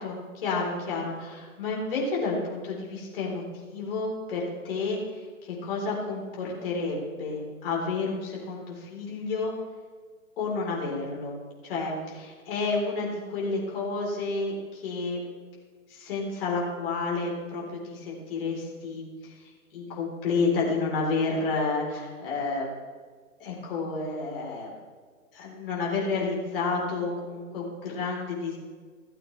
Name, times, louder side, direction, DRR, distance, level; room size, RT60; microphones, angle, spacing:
voice 1, 0.0-9.5 10.4-11.3 11.6-15.2 15.9-22.7 23.4-24.7 25.3-28.6, left 3 dB, 40° left, -3 dB, 3.9 m, -30 dB
16.5 x 8.4 x 3.3 m, 1.5 s
hypercardioid pair, 150°, 42 cm